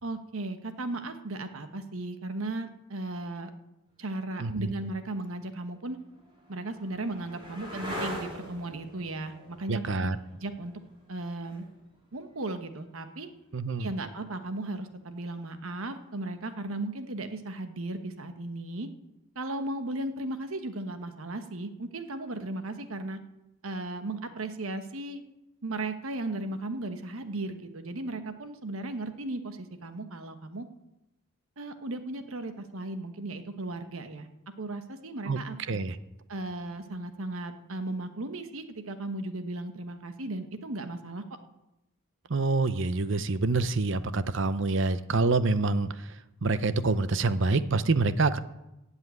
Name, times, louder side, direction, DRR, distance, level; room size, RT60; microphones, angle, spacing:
voice 1, 0.0-3.5 4.0-6.0 6.5-10.8 11.1-11.7 12.1-13.3 13.8-18.9 19.3-23.2 23.6-25.2 25.6-30.7 31.6-34.3 34.6-35.8 36.3-41.2, right 2 dB, 70° right, 9 dB, 1.2 m, -36 dB
voice 2, 4.4-4.7 9.7-10.2 13.5-13.9 35.3-35.4 35.7-36.0 42.3-45.9 46.4-48.4, right 3 dB, 55° right, 14 dB, 0.6 m, -26 dB
Coaster launch, 4.7-4.8 5.6-13.2 15.5-16.1, equal, 25° right, 3.2 m, -43 dB
15.5 x 5.6 x 9.3 m, 0.94 s
head